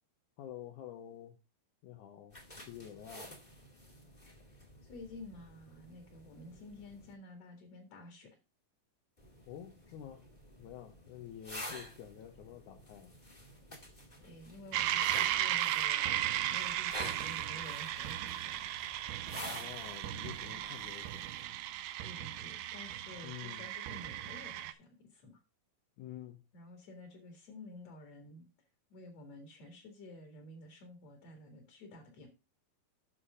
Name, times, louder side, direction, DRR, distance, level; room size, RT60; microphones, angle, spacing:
voice 1, 0.4-1.4 1.8-2.4 2.7-3.4 9.5-10.2 10.6-13.1 19.5-21.2 23.2-23.6 26.0-26.4, left 11 dB, 70° left, 2.1 m, -48 dB
sound 1, 2.3-7.1 9.2-21.4, equal, 15° left, 1.5 m, -50 dB
voice 2, 4.8-8.4 14.2-19.5 22.0-25.4 26.5-28.5 28.9-32.3, left 2 dB, 50° left, 2.7 m, -52 dB
sound 2, 14.7-24.7, right 12 dB, 85° right, 2.5 m, -36 dB
7.6 x 6.6 x 4.9 m
omnidirectional pair, 4.3 m